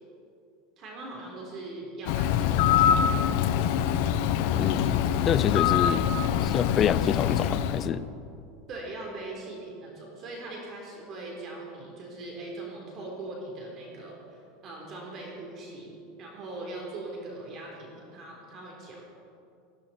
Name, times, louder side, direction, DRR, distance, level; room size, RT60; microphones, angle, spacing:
voice 1, 0.8-3.2 8.7-19.0, right 2 dB, 40° right, -1 dB, 3.8 m, -41 dB
Bird, 2.1-7.9, left 9 dB, 65° left, 0.9 m, -24 dB
voice 2, 4.5-4.9 5.2-6.1 6.4-8.1, left 8 dB, 35° left, 16 dB, 0.5 m, -27 dB
17.0 x 16.0 x 4.4 m, 2.6 s
supercardioid pair, 130°, 0 cm